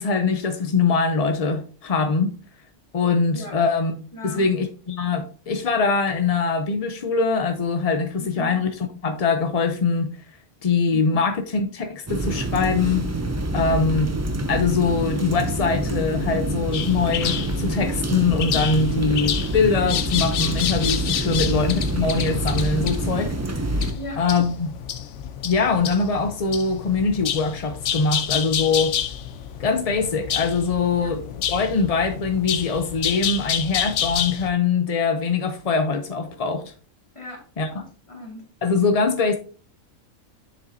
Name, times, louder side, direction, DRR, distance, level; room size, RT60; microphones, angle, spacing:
voice 1, 0.0-2.3 2.9-8.7 9.0-10.1 10.6-13.1 13.5-14.1 14.5-23.3 24.2-24.7 25.4-29.0 29.6-36.7 37.6-37.7 38.6-39.4, left 4 dB, 50° left, 0.4 m, -23 dB
voice 2, 4.1-4.5 8.4-8.6 13.6-13.8 21.3-21.5 23.9-24.2 31.0-31.1 37.1-37.5 37.7-38.4, equal, 25° left, 2.2 m, -38 dB
sound 1, 12.1-23.9, right 1 dB, 25° right, 0.4 m, -26 dB
sound 2, 16.7-34.5, left 9 dB, 70° left, 1.0 m, -29 dB
7.2 x 6.8 x 2.6 m
omnidirectional pair, 1.4 m